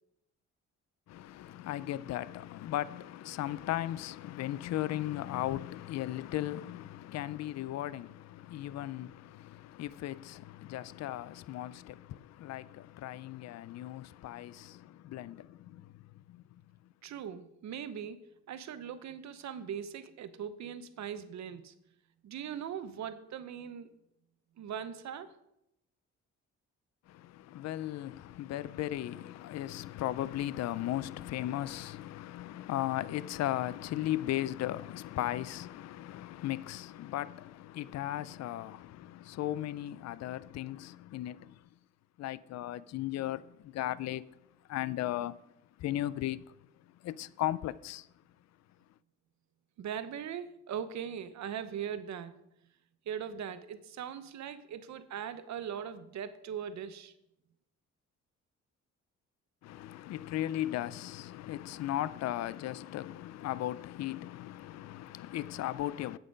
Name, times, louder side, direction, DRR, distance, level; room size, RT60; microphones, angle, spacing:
voice 1, 1.1-16.0 16.3-16.4 27.1-41.6 42.2-44.3 44.7-45.4 45.8-46.5 47.0-48.1 59.6-66.2, left 14 dB, 60° left, 0.5 m, -37 dB
voice 2, 17.0-18.2 18.5-21.7 22.2-23.9 24.6-25.4 49.8-52.3 53.1-57.1, right 8 dB, 65° right, 0.9 m, -40 dB
8.8 x 8.8 x 5.3 m
cardioid pair, 90°, 30 cm